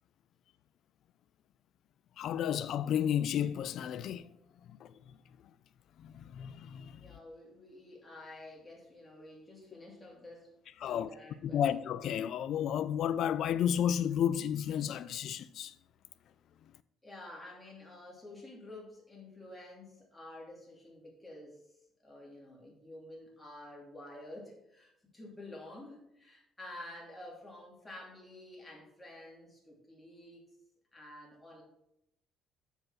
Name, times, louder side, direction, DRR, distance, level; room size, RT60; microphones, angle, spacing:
voice 1, 2.2-4.3 4.7-4.9 6.0-7.2 10.8-11.1 11.4-15.8, left 9 dB, 60° left, 0.3 m, -32 dB
voice 2, 7.0-10.5 10.8-11.6 17.0-21.6 22.0-30.5 30.9-31.6, left 1 dB, 10° left, 2.6 m, -50 dB
7.3 x 5.5 x 5.8 m
cardioid pair, 125°, 0 cm